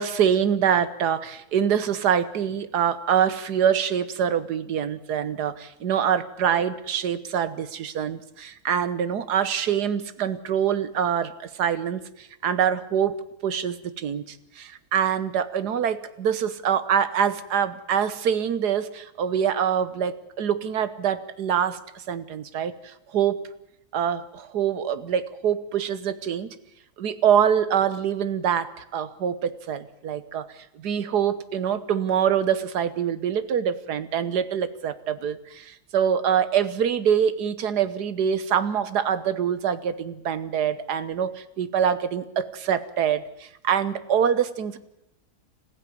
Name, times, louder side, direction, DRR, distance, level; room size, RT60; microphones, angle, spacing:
voice 1, 0.0-23.4 23.9-26.5 27.0-30.5 30.7-44.8, right 8 dB, 90° right, 14 dB, 1.7 m, -25 dB
26.0 x 15.0 x 9.4 m, 0.84 s
omnidirectional pair, 1.7 m